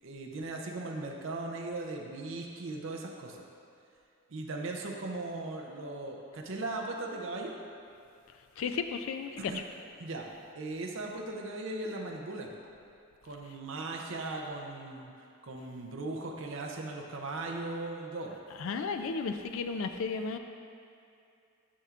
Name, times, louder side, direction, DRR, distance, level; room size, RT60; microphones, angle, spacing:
voice 1, 0.0-3.4 4.3-7.6 9.4-9.6 10.0-10.3 10.6-12.5 13.2-15.1 15.4-18.4, right 2 dB, 60° right, 0 dB, 0.6 m, -38 dB
voice 2, 8.6-9.6 18.6-20.4, left 5 dB, 65° left, 7 dB, 0.3 m, -34 dB
9.9 x 5.7 x 2.4 m, 2.5 s
head